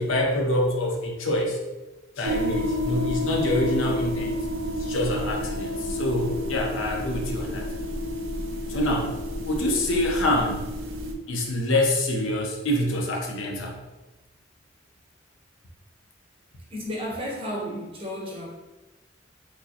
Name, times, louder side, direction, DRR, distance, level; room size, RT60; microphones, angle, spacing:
voice 1, 0.0-1.6 2.2-4.4 4.8-7.7 8.7-9.1 9.5-10.7 11.3-13.8, left 1 dB, 80° left, 0 dB, 0.7 m, -26 dB
sound 1, 2.2-11.1, left 1 dB, 80° right, 0.4 m, -30 dB
voice 2, 16.7-18.5, equal, 30° right, -3 dB, 0.7 m, -32 dB
4.5 x 2.0 x 2.8 m, 1.1 s
head